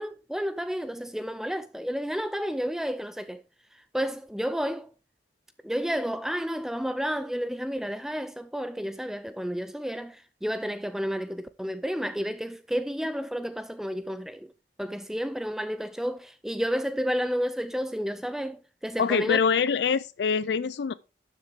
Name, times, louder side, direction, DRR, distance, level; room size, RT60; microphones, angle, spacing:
voice 1, 0.0-3.4 3.9-4.9 5.6-14.5 14.8-19.4, equal, 5° right, 0.4 m, -31 dB
voice 2, 19.0-20.9, left 6 dB, 75° left, 0.4 m, -24 dB
12.5 x 7.1 x 3.5 m
head